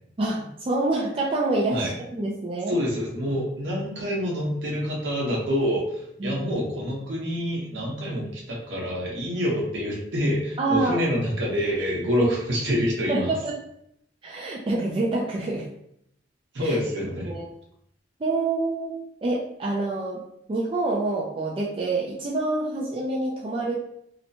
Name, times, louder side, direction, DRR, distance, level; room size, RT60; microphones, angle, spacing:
voice 1, 0.2-2.8 6.2-6.4 10.6-11.0 12.2-12.3 13.1-13.5 14.2-15.6 16.6-16.8 17.3-17.4 18.2-18.9 19.2-20.2 20.5-23.8, right 2 dB, 30° right, -4 dB, 0.3 m, -26 dB
voice 2, 2.7-13.3 16.5-17.3, equal, 70° right, -3 dB, 0.9 m, -27 dB
2.9 x 2.1 x 2.6 m, 0.75 s
head